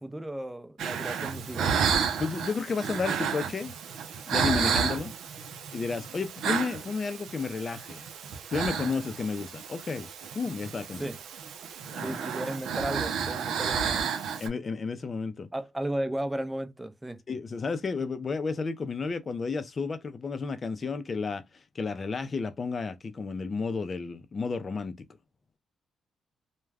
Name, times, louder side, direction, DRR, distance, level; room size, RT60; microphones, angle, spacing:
voice 1, 0.0-1.7 11.0-11.2 12.0-14.1 15.5-17.2, right 1 dB, 10° right, 0.5 m, -34 dB
sound 1, 0.8-14.5, right 7 dB, 80° right, 0.5 m, -32 dB
voice 2, 2.2-3.7 4.3-5.1 5.7-8.1 8.5-11.1 11.9-12.2 14.4-15.5 17.3-21.4 21.8-25.1, left 4 dB, 40° left, 0.5 m, -32 dB
2.3 x 2.2 x 3.3 m
cardioid pair, 75°, 0 cm